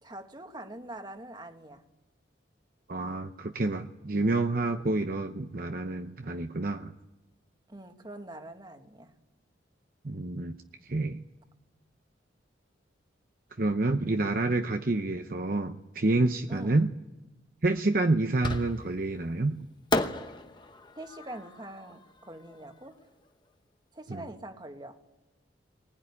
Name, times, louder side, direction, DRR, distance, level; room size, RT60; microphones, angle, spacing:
voice 1, 0.0-1.8 7.7-9.1 16.5-16.8 20.9-23.0 23.9-25.0, right 1 dB, 20° right, 6 dB, 1.6 m, -44 dB
voice 2, 2.9-6.9 10.0-10.5 10.9-11.2 13.6-16.9 17.6-19.6 24.1-24.2, right 2 dB, 50° right, 6 dB, 0.7 m, -28 dB
Fireworks, 18.4-19.1 19.9-23.0, left 2 dB, 25° left, 1.0 m, -34 dB
21.5 x 20.0 x 9.8 m, 1.1 s
head